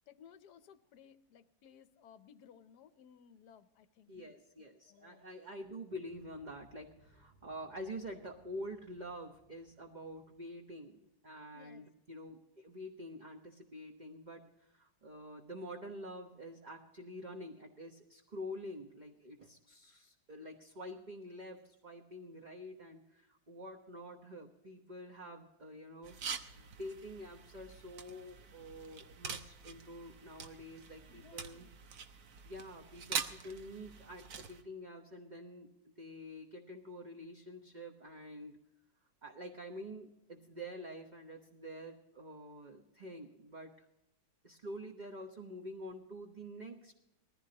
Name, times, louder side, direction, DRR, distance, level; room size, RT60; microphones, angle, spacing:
voice 1, 0.1-4.1 4.9-5.2 11.5-11.9 31.1-31.7, left 8 dB, 65° left, 12 dB, 1.2 m, -60 dB
voice 2, 4.1-31.7 32.4-38.6 39.2-43.9 44.4-46.9, equal, 30° right, 1 dB, 0.9 m, -47 dB
sound 1, 6.0-11.1, equal, 75° right, 6.2 m, -68 dB
sound 2, 26.0-34.6, right 6 dB, 55° right, 1.3 m, -45 dB
20.5 x 15.0 x 2.9 m, 0.91 s
omnidirectional pair, 2.2 m